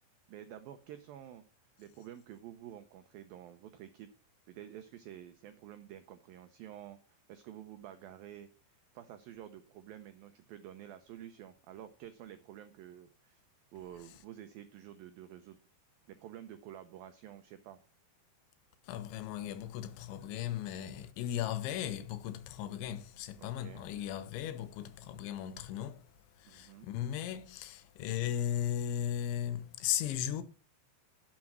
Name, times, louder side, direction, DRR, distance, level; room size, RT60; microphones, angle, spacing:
voice 1, 0.3-1.4 1.8-4.1 4.5-13.4 13.7-15.6 16.1-17.8 23.4-23.8 26.5-26.9, right 11 dB, 90° right, 2.0 m, -50 dB
voice 2, 18.8-26.0 26.4-30.4, left 10 dB, 80° left, 3.3 m, -36 dB
11.5 x 7.6 x 6.2 m
omnidirectional pair, 5.2 m